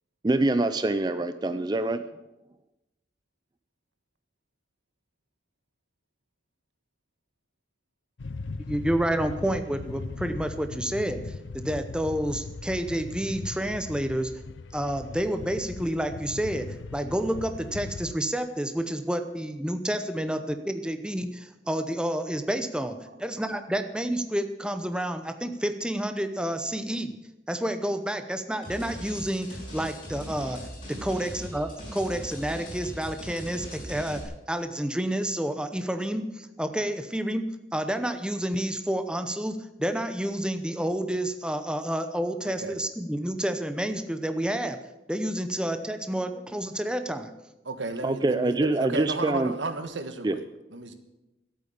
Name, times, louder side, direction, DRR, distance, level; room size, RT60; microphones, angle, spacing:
voice 1, 0.2-2.0 48.0-49.5 50.2-50.4, right 2 dB, 20° right, 11 dB, 0.4 m, -25 dB
sound 1, 8.2-18.1, left 3 dB, 85° left, 0.6 m, -38 dB
voice 2, 8.7-11.2 11.5-14.3 14.7-27.2 27.5-30.6 30.9-34.2 34.5-37.5 37.7-44.8 45.1-47.3, right 1 dB, 5° right, 8 dB, 0.8 m, -29 dB
sound 2, 28.6-34.2, equal, 30° left, 5.8 m, -40 dB
voice 3, 47.6-50.9, right 3 dB, 90° right, 8 dB, 1.4 m, -33 dB
12.5 x 8.6 x 8.6 m, 0.98 s
head